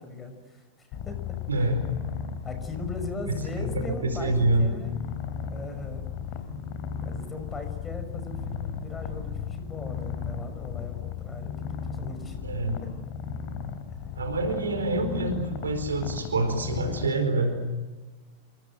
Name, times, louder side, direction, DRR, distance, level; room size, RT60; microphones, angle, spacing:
voice 1, 0.0-1.7 2.4-5.0 5.5-6.1 7.0-12.4 12.8-12.9, left 3 dB, 15° left, 7 dB, 6.1 m, -39 dB
Purr, 0.9-17.1, left 7 dB, 40° left, 3.6 m, -35 dB
voice 2, 1.5-1.8 3.6-4.8 12.4-12.8 14.2-17.6, right 2 dB, 70° right, 8 dB, 4.5 m, -26 dB
29.0 x 25.5 x 7.9 m, 1.3 s
figure-of-eight pair, 90°, 0 cm